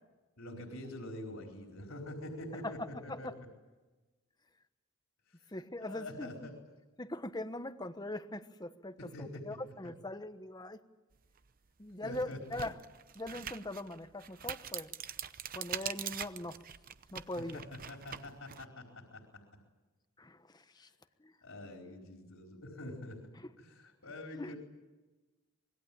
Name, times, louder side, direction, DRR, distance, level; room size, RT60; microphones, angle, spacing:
voice 1, 0.4-3.5 5.3-5.4 5.8-6.5 9.0-9.5 12.0-12.6 17.4-19.4 21.4-23.3 23.6-24.6, left 1 dB, 70° left, 2 dB, 4.4 m, -45 dB
voice 2, 2.6-3.3 5.5-6.5 7.0-10.8 11.8-12.8 13.1-14.9 15.5-16.6 17.1-17.6 20.2-20.9 21.2-21.4 22.8-22.9 23.4-23.5 24.4-24.5, left 1 dB, 20° left, 10 dB, 1.2 m, -41 dB
sound 1, 11.4-11.5 12.0-18.6, right 9 dB, 40° right, 0.8 m, -43 dB
25.5 x 21.5 x 8.7 m, 1.2 s
head